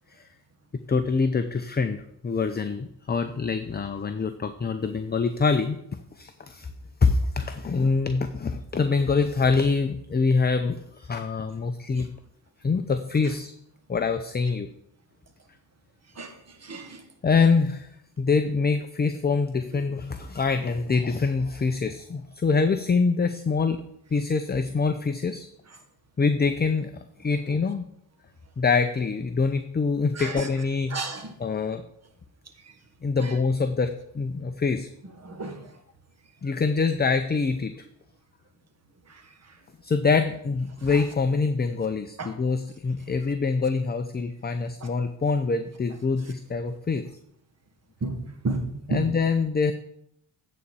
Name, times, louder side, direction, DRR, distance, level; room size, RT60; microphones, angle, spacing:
voice 1, 0.9-5.8 6.2-6.7 7.0-12.1 12.6-13.5 13.9-14.7 17.2-17.9 18.2-23.8 24.1-25.5 26.2-26.9 27.2-27.9 28.6-31.0 31.4-31.8 33.0-34.9 36.4-37.7 39.8-47.0 48.9-49.7, left 4 dB, 20° left, 8 dB, 0.6 m, -25 dB
voice 2, 16.6-17.0 30.1-30.5 30.9-31.3 33.2-33.3 35.2-35.6 42.2-42.3 48.0-49.0, right 3 dB, 35° right, 6 dB, 1.6 m, -31 dB
9.2 x 4.3 x 7.1 m, 0.73 s
supercardioid pair, 70°, 47 cm